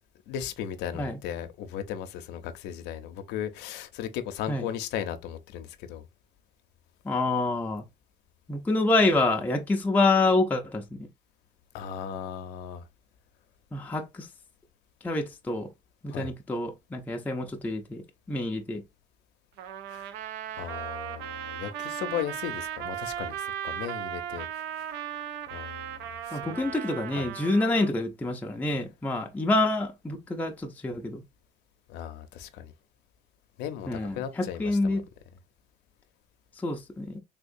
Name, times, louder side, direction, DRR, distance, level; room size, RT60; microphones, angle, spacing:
voice 1, 0.3-6.0 11.7-12.8 16.1-16.3 19.9-20.1 20.6-24.9 25.5-26.6 27.2-27.3 31.9-32.7 33.6-35.0, left 9 dB, 90° left, 0.6 m, -36 dB
voice 2, 7.0-7.8 8.5-11.1 13.7-14.3 15.0-15.7 16.0-18.0 18.3-18.8 26.3-31.2 33.9-35.0 36.6-37.2, left 2 dB, 10° left, 0.5 m, -27 dB
Trumpet, 19.6-27.9, right 10 dB, 80° right, 0.6 m, -37 dB
3.5 x 2.8 x 2.5 m
cardioid pair, 110°, 17 cm